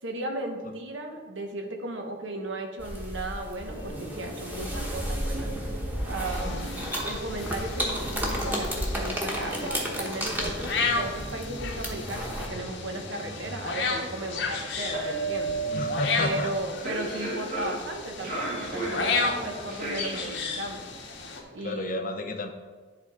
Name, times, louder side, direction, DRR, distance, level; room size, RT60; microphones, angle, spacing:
voice 1, 0.0-5.5 6.0-15.5 16.1-20.9 21.5-22.0, right 2 dB, 85° right, 3 dB, 1.1 m, -35 dB
sound 1, 2.8-12.5, equal, 10° right, 1.1 m, -33 dB
sound 2, 3.6-21.4, right 2 dB, 55° right, 2.2 m, -37 dB
sound 3, 6.2-21.4, left 4 dB, 70° left, 0.9 m, -34 dB
voice 2, 15.7-16.5 21.6-22.5, left 2 dB, 50° left, 6 dB, 0.6 m, -31 dB
10.5 x 3.5 x 4.8 m, 1.4 s
head